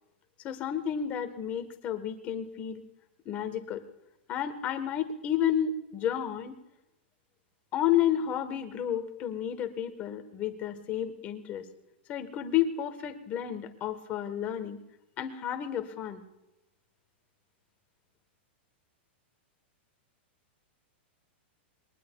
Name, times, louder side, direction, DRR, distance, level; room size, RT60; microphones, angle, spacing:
voice 1, 0.4-2.8 3.2-3.8 4.3-6.6 7.7-11.7 12.1-14.8 15.2-16.2, left 10 dB, 25° left, 8 dB, 1.2 m, -31 dB
22.0 x 19.5 x 2.3 m, 0.93 s
supercardioid pair, 165°, 6 cm